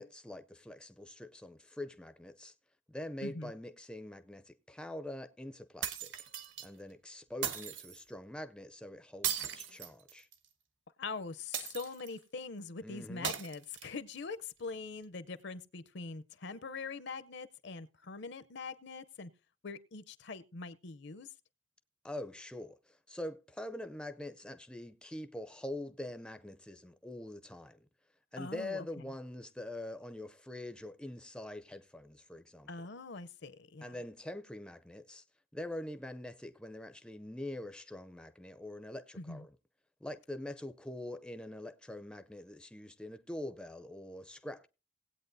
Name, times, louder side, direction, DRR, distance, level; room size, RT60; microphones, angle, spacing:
voice 1, 0.0-2.5 2.9-6.1 6.6-10.3 12.8-13.3 22.0-27.9 28.3-32.7 33.8-35.2 35.5-39.5 40.0-44.7, left 1 dB, 5° left, 0.4 m, -44 dB
voice 2, 3.2-3.5 11.0-19.3 19.6-21.3 28.4-28.9 32.7-33.9 39.2-39.4, left 4 dB, 60° left, 0.6 m, -43 dB
sound 1, 5.8-6.7 7.4-8.0 9.2-10.5 11.5-12.2 13.2-14.2, right 9 dB, 65° right, 1.2 m, -38 dB
18.5 x 8.4 x 2.6 m
head